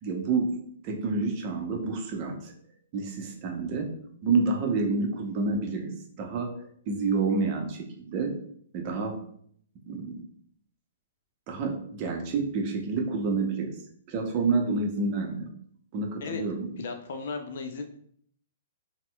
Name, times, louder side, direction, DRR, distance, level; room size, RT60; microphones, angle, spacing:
voice 1, 0.0-2.5 2.9-3.9 4.2-6.5 6.9-8.4 8.7-9.2 9.9-10.2 11.5-13.7 14.1-15.5 15.9-16.7, right 4 dB, 40° right, 2 dB, 0.7 m, -28 dB
voice 2, 16.8-17.8, left 4 dB, 65° left, 5 dB, 0.5 m, -35 dB
4.1 x 2.1 x 2.3 m, 0.63 s
hypercardioid pair, 125°, 0 cm